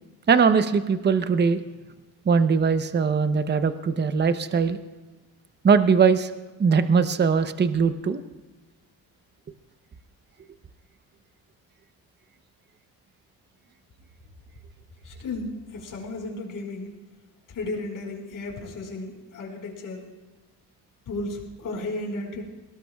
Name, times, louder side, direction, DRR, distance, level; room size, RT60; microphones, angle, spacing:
voice 1, 0.3-1.6 2.3-4.8 5.6-6.3 6.6-8.2, right 5 dB, 30° right, 10 dB, 0.8 m, -20 dB
voice 2, 15.0-16.9 17.5-20.0 21.1-22.5, left 2 dB, 60° left, -1 dB, 4.9 m, -34 dB
21.5 x 18.0 x 2.4 m, 1.2 s
cardioid pair, 90°, 37 cm